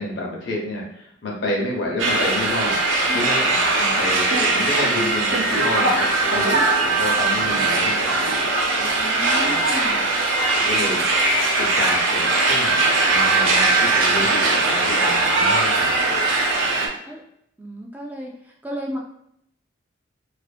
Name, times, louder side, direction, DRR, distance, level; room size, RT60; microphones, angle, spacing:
voice 1, 0.0-2.8 3.1-8.3 9.4-9.6 10.5-11.0 11.6-12.8 13.1-16.0, left 1 dB, 65° left, -2 dB, 0.8 m, -30 dB
sound 1, 2.0-16.9, right 2 dB, 80° right, 0.5 m, -20 dB
voice 2, 3.1-3.5 6.5-6.7 8.8-10.0 17.1-17.2 17.6-19.0, equal, 10° right, -1 dB, 0.3 m, -34 dB
2.5 x 2.5 x 2.4 m, 0.73 s
head